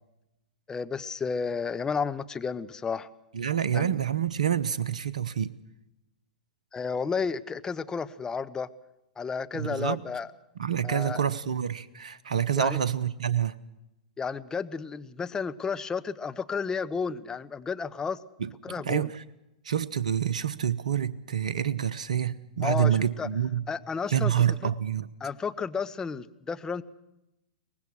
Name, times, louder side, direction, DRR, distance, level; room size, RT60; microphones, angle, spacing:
voice 1, 0.7-3.1 3.7-3.9 6.7-8.7 9.2-10.3 10.8-11.2 12.6-12.8 14.2-18.2 18.6-19.1 22.6-23.3 23.7-24.3 25.2-26.8, left 5 dB, 15° left, 1.0 m, -32 dB
voice 2, 3.3-5.5 9.5-10.0 10.6-13.6 18.4-19.2 19.6-23.6 24.1-25.1, right 9 dB, 70° right, 0.9 m, -27 dB
23.5 x 19.5 x 6.4 m
figure-of-eight pair, 100°, 4 cm